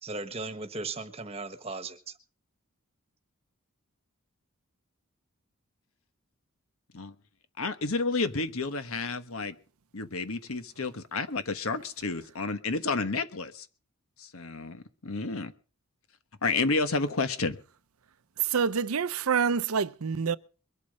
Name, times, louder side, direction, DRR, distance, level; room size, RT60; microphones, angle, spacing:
voice 1, 0.0-2.1, right 3 dB, 25° right, 1.3 m, -37 dB
voice 2, 7.6-9.5 9.9-13.7 14.2-15.5 16.4-17.6, left 3 dB, 75° left, 1.2 m, -30 dB
voice 3, 18.4-20.4, right 6 dB, 80° right, 0.6 m, -27 dB
22.5 x 8.4 x 5.4 m
head